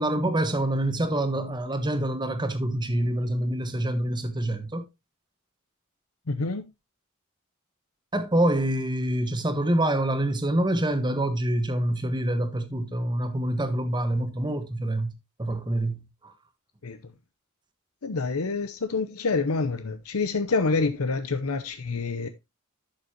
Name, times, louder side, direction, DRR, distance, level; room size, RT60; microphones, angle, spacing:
voice 1, 0.0-4.8 8.1-15.1 15.4-16.3, right 1 dB, 20° right, 1.3 m, -26 dB
voice 2, 6.3-6.7 16.8-17.0 18.0-22.3, left 3 dB, 80° left, 0.8 m, -27 dB
11.5 x 6.6 x 2.9 m
head